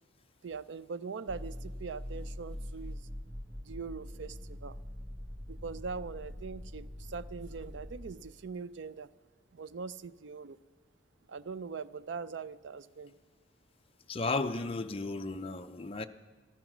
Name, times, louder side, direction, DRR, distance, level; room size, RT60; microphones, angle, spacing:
voice 1, 0.4-3.1 3.6-4.8 5.4-9.1 9.5-10.6 11.3-13.1, right 5 dB, 65° right, 0.4 m, -42 dB
sound 1, 1.3-8.1, equal, 30° right, 1.4 m, -43 dB
voice 2, 14.1-16.1, left 3 dB, 30° left, 0.5 m, -34 dB
13.5 x 13.5 x 6.1 m
head